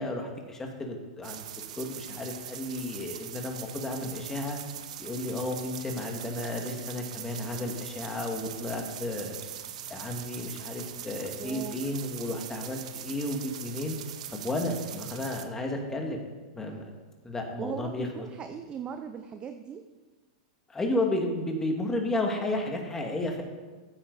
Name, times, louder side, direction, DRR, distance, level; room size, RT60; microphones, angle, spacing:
voice 1, 0.0-1.4 1.8-4.6 5.0-9.3 9.9-14.0 14.3-16.2 16.5-16.9 17.2-18.2 20.7-23.4, left 1 dB, 15° left, 2 dB, 2.1 m, -32 dB
sound 1, 1.2-15.4, right 10 dB, 70° right, 0.9 m, -41 dB
voice 2, 11.4-11.8 17.6-19.9, right 7 dB, 25° right, 8 dB, 0.7 m, -39 dB
15.0 x 8.8 x 4.2 m, 1.3 s
hypercardioid pair, 120°, 4 cm